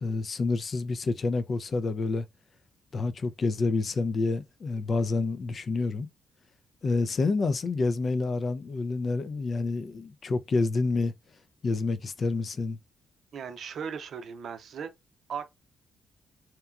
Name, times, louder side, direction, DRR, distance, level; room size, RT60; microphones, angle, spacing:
voice 1, 0.0-2.3 2.9-6.1 6.8-11.1 11.6-12.8, left 3 dB, 50° left, 0.4 m, -28 dB
voice 2, 13.3-14.9 15.3-15.5, right 7 dB, 65° right, 0.5 m, -37 dB
2.9 x 2.2 x 2.3 m
supercardioid pair, 60°, 0 cm